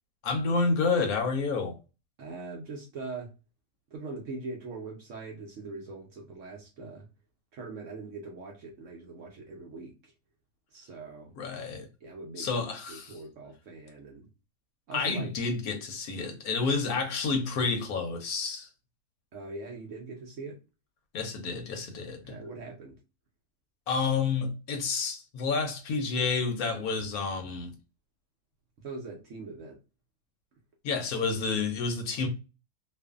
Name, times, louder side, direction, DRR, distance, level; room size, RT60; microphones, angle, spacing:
voice 1, 0.2-1.8 11.4-11.9 12.4-13.1 14.9-18.7 21.1-22.2 23.9-27.7 30.8-32.3, left 4 dB, 70° left, 1.0 m, -29 dB
voice 2, 2.2-3.3 3.9-7.1 7.5-10.1 10.7-11.3 12.0-12.5 12.9-14.3 14.9-15.3 19.3-20.6 22.0-22.9 28.8-29.8, right 3 dB, 65° right, 0.8 m, -42 dB
2.5 x 2.5 x 2.3 m
omnidirectional pair, 1.7 m